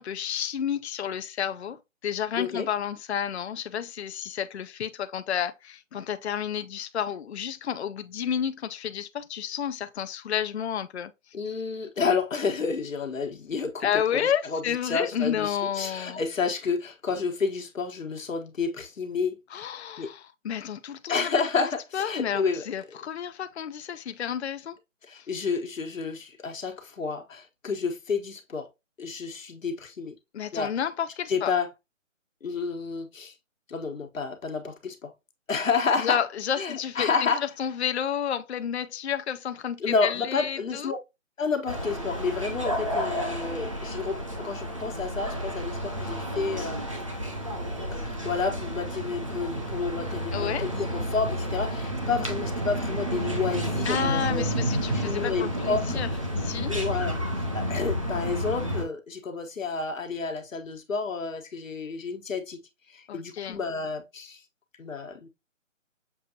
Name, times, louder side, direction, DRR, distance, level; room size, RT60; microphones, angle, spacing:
voice 1, 0.0-11.1 13.8-16.2 19.5-21.3 21.9-24.8 25.1-25.3 30.3-31.5 36.0-41.0 50.3-50.7 53.9-56.1 56.4-56.7 63.1-63.6, left 9 dB, 60° left, 0.5 m, -31 dB
voice 2, 2.4-2.7 11.3-13.9 14.4-19.7 20.0-20.1 21.1-22.6 25.1-28.7 29.0-30.1 30.5-30.7 31.3-31.7 32.4-33.3 33.7-35.1 35.5-36.2 36.6-37.4 39.8-41.0 41.4-46.8 47.9-54.5 54.9-56.0 56.7-57.2 57.5-62.6 62.9-64.4 64.8-65.3, left 5 dB, 80° left, 1.2 m, -30 dB
sound 1, 41.7-58.8, equal, 25° right, 0.5 m, -30 dB
6.7 x 2.6 x 2.8 m
hypercardioid pair, 165°, 39 cm